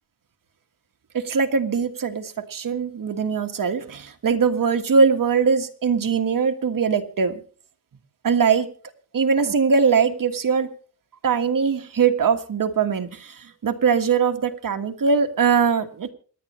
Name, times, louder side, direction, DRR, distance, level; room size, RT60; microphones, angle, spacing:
voice 1, 1.1-7.4 8.2-8.7 9.1-10.7 11.2-16.1, right 5 dB, 70° right, 6 dB, 1.6 m, -21 dB
27.5 x 9.8 x 3.2 m, 0.43 s
wide cardioid pair, 115°, 34 cm